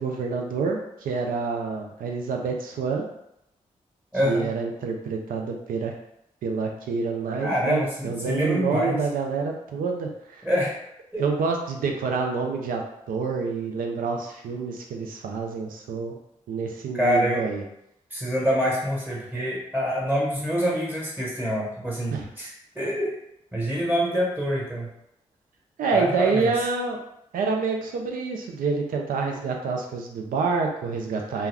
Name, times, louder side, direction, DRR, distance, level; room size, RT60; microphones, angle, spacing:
voice 1, 0.0-3.0 4.2-5.9 6.4-10.4 11.2-12.8 13.1-16.2 16.5-17.6 22.1-22.2 25.8-27.0 27.3-31.5, right 4 dB, 85° right, 2 dB, 0.4 m, -27 dB
voice 2, 4.1-4.5 7.4-9.0 10.4-10.7 11.1-11.3 16.9-17.4 18.1-22.5 22.7-23.1 23.5-24.9 25.9-26.5, equal, 15° right, -5 dB, 1.2 m, -25 dB
2.2 x 2.1 x 3.4 m, 0.80 s
supercardioid pair, 45°, 14 cm